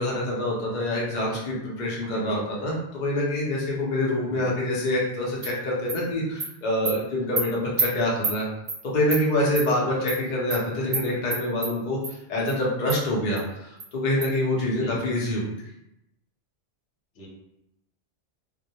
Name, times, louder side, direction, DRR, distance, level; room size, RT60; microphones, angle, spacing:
voice 1, 0.0-8.5 8.9-15.4, left 1 dB, 50° left, -4 dB, 0.7 m, -26 dB
Animal, 5.4-5.5 5.9-6.0 6.4-6.5 6.8-6.9 7.4-7.5 7.8-7.9 8.2-8.4 8.7-8.8 9.1-9.2 9.5-9.7 10.1-10.2 10.5-10.6 10.9-11.0 11.3-11.7 12.0-12.1 12.5-12.6 12.9-13.0 13.4-13.5 13.8-13.9 14.2-14.3, right 3 dB, 55° right, 0.4 m, -27 dB
voice 2, 14.6-14.9 17.2-17.3, right 1 dB, 85° left, -3 dB, 1.0 m, -39 dB
2.2 x 2.1 x 2.7 m, 0.85 s
omnidirectional pair, 1.2 m